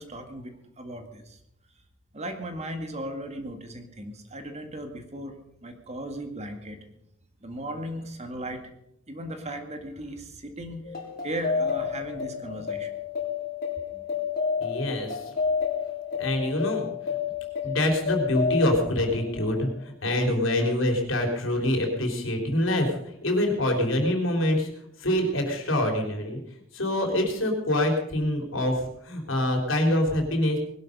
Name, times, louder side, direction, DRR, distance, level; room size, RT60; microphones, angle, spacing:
voice 1, 0.0-1.4 2.1-6.8 7.4-8.6 9.1-11.0 11.2-12.9 13.9-14.0 16.5-16.6, right 1 dB, 35° right, 6 dB, 2.0 m, -37 dB
sound 1, 10.8-19.8, left 6 dB, 45° left, 3.8 m, -30 dB
voice 2, 14.6-15.3 16.2-16.8 17.6-26.4 26.7-30.6, left 1 dB, 70° left, 3 dB, 3.9 m, -25 dB
20.5 x 12.0 x 5.4 m, 0.77 s
head